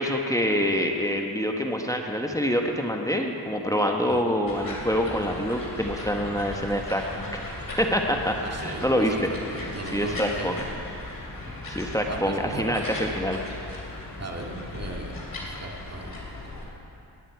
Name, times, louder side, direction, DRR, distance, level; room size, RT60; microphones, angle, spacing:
voice 1, 0.0-7.3 7.8-9.1 9.6-10.6 11.7-13.4, equal, 5° left, 2 dB, 1.2 m, -26 dB
sound 1, 4.5-16.6, left 2 dB, 45° left, 3.2 m, -37 dB
voice 2, 8.4-10.7 12.1-12.6 14.2-16.1, right 2 dB, 35° right, 1 dB, 2.0 m, -37 dB
18.0 x 9.7 x 4.7 m, 2.7 s
cardioid pair, 50°, 46 cm